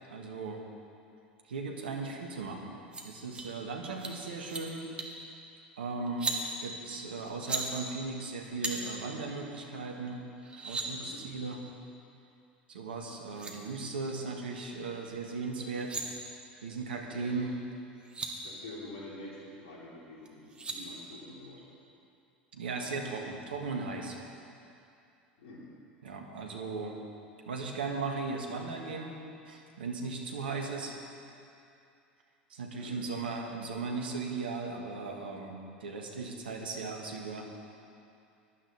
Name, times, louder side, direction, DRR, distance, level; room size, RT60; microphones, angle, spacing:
voice 1, 0.1-0.6 1.5-2.7 3.0-4.9 5.8-6.4 6.6-10.2 10.6-11.7 12.7-16.0 16.6-17.5 22.5-24.2 26.0-27.0 27.5-29.2 29.5-30.9 32.5-37.5, right 4 dB, 70° right, 2 dB, 1.6 m, -37 dB
sound 1, 2.9-3.0 3.3-3.5 3.9-4.1 4.4-4.6 5.0-5.2 6.1-6.4 7.3-7.6 8.6-8.7 10.1-10.2 10.4-10.9 12.9-13.0 13.3-13.5 15.6-16.0 17.7-17.8 18.0-18.3 20.2-20.8, right 4 dB, 20° right, 1.7 m, -36 dB
voice 2, 10.8-11.3 17.0-17.4 18.4-21.6 25.4-25.7 32.8-33.0, left 1 dB, 65° left, -5 dB, 3.7 m, -47 dB
18.5 x 11.5 x 3.4 m, 2.6 s
figure-of-eight pair, 75°, 5 cm